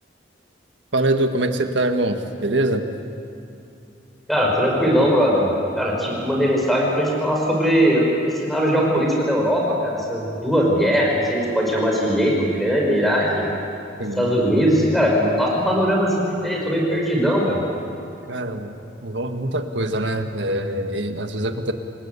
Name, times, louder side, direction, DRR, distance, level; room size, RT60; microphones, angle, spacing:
voice 1, 0.9-2.9 14.0-14.3 18.3-18.7 19.0-21.7, right 1 dB, 80° right, 6 dB, 1.7 m, -23 dB
voice 2, 4.3-5.5 5.8-8.1 8.4-13.4 14.2-16.1 16.4-17.6, equal, ahead, -2 dB, 5.8 m, -20 dB
27.5 x 19.5 x 8.3 m, 2.6 s
head